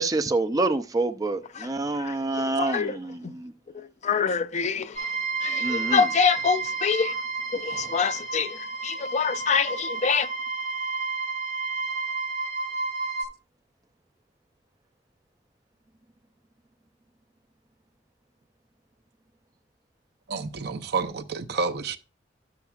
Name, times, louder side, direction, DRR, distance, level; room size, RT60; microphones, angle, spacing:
voice 1, 0.0-3.5 5.6-6.1, right 2 dB, 20° right, 0.4 m, -27 dB
voice 2, 2.4-3.0 4.0-4.9 5.4-7.1 7.5-8.6 8.8-10.3, left 6 dB, 40° left, 0.4 m, -25 dB
sound 1, 4.9-13.2, right 4 dB, 90° left, 3.3 m, -31 dB
voice 3, 20.3-22.0, right 4 dB, 60° right, 0.6 m, -29 dB
13.0 x 7.1 x 2.3 m
head